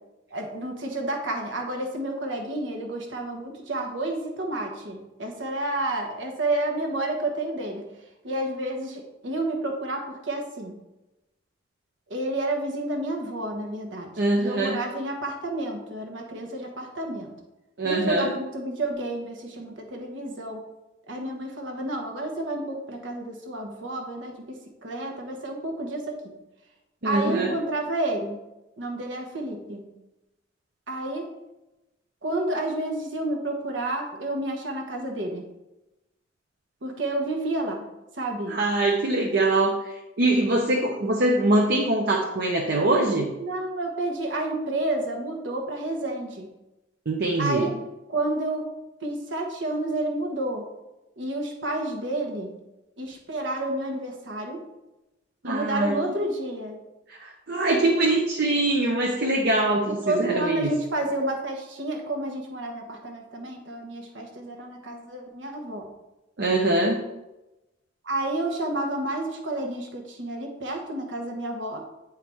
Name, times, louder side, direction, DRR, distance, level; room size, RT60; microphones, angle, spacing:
voice 1, 0.3-7.9 8.2-10.7 12.1-17.3 17.8-20.6 21.1-26.3 27.0-28.4 28.8-29.8 30.9-31.3 32.2-35.4 36.8-37.9 38.1-38.6 43.4-46.5 47.4-47.7 48.1-48.7 49.0-50.7 51.2-52.5 53.0-54.6 55.4-56.8 59.9-65.8 68.0-71.8, right 2 dB, 80° right, 2 dB, 1.2 m, -30 dB
voice 2, 14.2-14.8 17.8-18.3 27.0-27.5 38.5-39.7 40.2-43.3 47.1-47.6 55.4-55.9 57.2-60.7 66.4-67.0, right 2 dB, 60° right, 0 dB, 0.8 m, -23 dB
8.5 x 4.6 x 3.5 m, 0.99 s
head